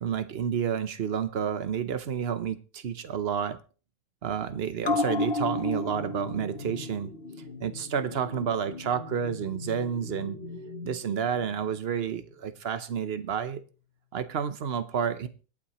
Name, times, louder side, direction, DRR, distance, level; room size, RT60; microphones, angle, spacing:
voice 1, 0.0-3.6 4.2-7.1 7.6-10.4 10.8-13.6 14.1-15.3, right 8 dB, 70° right, 0.5 m, -30 dB
sound 1, 4.8-11.7 12.1-12.2, left 2 dB, 40° left, 1.0 m, -34 dB
25.0 x 8.7 x 3.0 m
omnidirectional pair, 2.1 m